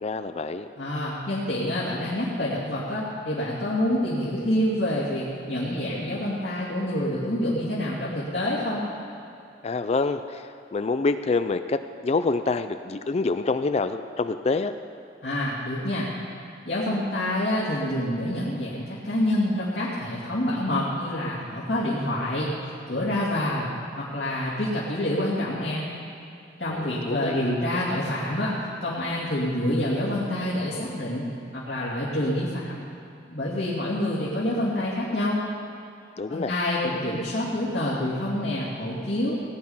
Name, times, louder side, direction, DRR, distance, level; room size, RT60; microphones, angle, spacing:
voice 1, 0.0-0.7 9.6-14.7 26.7-27.6 36.2-36.5, left 3 dB, 35° left, 10 dB, 0.4 m, -27 dB
voice 2, 0.8-8.8 15.2-16.1 16.7-22.5 22.9-23.7 24.0-25.9 26.6-28.5 28.8-31.3 31.5-32.8 33.3-35.4 36.3-39.3, left 1 dB, 65° left, -8 dB, 2.5 m, -27 dB
18.0 x 9.7 x 5.6 m, 2.7 s
head